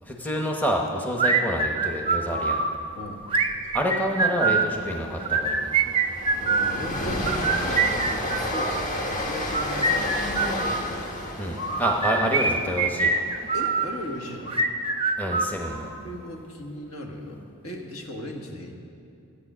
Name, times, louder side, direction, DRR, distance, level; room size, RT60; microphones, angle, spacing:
voice 1, 0.0-2.6 3.7-5.7 11.4-13.1 15.2-15.9, equal, 10° left, 0 dB, 0.9 m, -28 dB
sound 1, 1.2-2.7 3.3-4.7 5.2-6.8 7.3-8.8 9.4-10.8 11.6-13.9 14.5-15.9, right 4 dB, 25° right, 0.6 m, -24 dB
voice 2, 2.9-3.3 6.4-10.4 12.1-12.3 13.5-14.6 16.0-18.7, left 1 dB, 70° left, 2 dB, 1.5 m, -37 dB
Train, 3.5-3.8 4.0-4.2 4.6-14.7, left 1 dB, 35° left, 1.3 m, -32 dB
14.5 x 8.7 x 6.1 m, 2.5 s
head